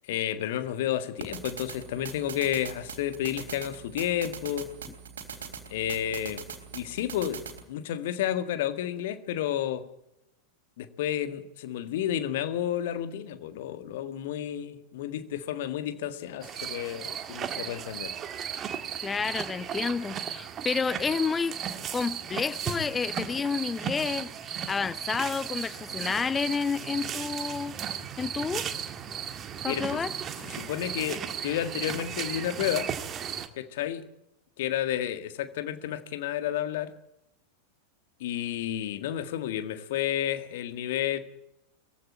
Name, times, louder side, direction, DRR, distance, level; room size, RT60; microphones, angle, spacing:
voice 1, 0.1-4.7 5.7-6.4 6.7-7.4 7.7-9.8 10.8-18.1 29.6-30.1 30.5-32.9 33.6-34.1 34.6-36.9 38.2-41.2, left 11 dB, 55° left, 1.8 m, -31 dB
sound 1, 1.2-7.6, right 7 dB, 65° right, 3.3 m, -42 dB
sound 2, 16.4-33.5, right 8 dB, 25° right, 1.8 m, -36 dB
voice 2, 19.0-21.6 21.9-27.8 28.2-28.6 29.6-30.1, left 5 dB, 15° left, 0.7 m, -30 dB
22.0 x 15.5 x 8.6 m
figure-of-eight pair, 90°, 0 cm